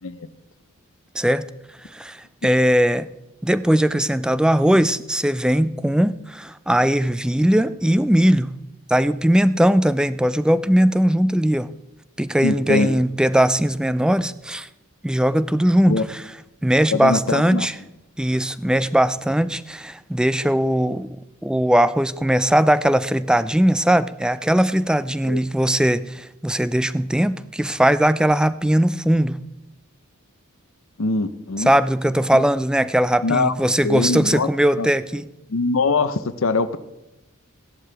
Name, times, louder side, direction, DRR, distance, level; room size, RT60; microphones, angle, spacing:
voice 1, 1.1-1.5 1.8-3.1 3.4-8.6 8.9-11.7 12.2-14.7 15.0-16.2 16.6-17.7 18.2-21.1 21.4-29.4 31.7-35.3, right 1 dB, 5° right, 15 dB, 0.3 m, -19 dB
voice 2, 12.4-13.0 15.9-16.0 16.9-17.7 25.2-25.4 31.0-31.7 32.3-32.4 33.2-33.5 33.8-34.5 34.8-34.9 35.5-36.8, left 3 dB, 65° left, 13 dB, 0.7 m, -22 dB
15.0 x 11.0 x 3.4 m, 0.95 s
head